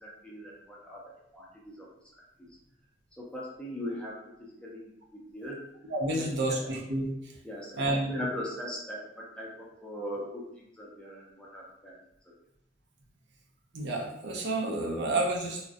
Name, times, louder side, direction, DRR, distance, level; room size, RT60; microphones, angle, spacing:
voice 1, 0.0-1.9 2.4-2.5 3.2-5.6 6.2-6.7 7.4-12.0, left 1 dB, 5° left, -4 dB, 0.4 m, -40 dB
voice 2, 5.9-7.1 7.7-8.1 13.7-15.7, right 2 dB, 65° right, -1 dB, 0.5 m, -30 dB
2.4 x 2.1 x 2.5 m, 0.80 s
head